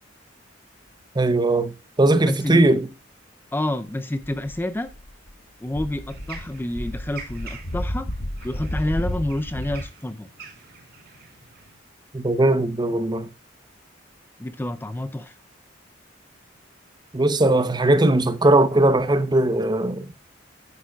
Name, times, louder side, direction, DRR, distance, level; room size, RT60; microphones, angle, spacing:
voice 1, 1.1-2.9 12.1-13.3 17.1-20.1, right 2 dB, 20° right, 0.7 m, -19 dB
voice 2, 2.3-2.6 3.5-4.9 5.6-8.1 8.4-10.3 14.4-15.3, left 1 dB, 10° left, 0.4 m, -28 dB
sound 1, 4.2-5.3 5.7-9.8, equal, 85° left, 1.4 m, -32 dB
sound 2, 6.1-11.8, right 5 dB, 55° right, 2.1 m, -45 dB
10.0 x 9.7 x 2.3 m
head